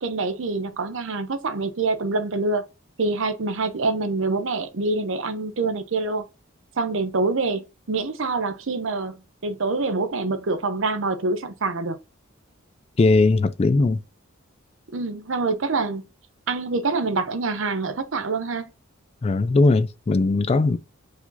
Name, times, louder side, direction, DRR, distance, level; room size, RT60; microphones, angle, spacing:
voice 1, 0.0-2.6 3.0-6.2 6.8-12.0 14.9-16.0 16.5-18.7, right 3 dB, 65° right, 0.7 m, -26 dB
voice 2, 13.0-14.0 19.2-20.8, left 3 dB, 30° left, 0.3 m, -19 dB
4.8 x 2.7 x 3.8 m
head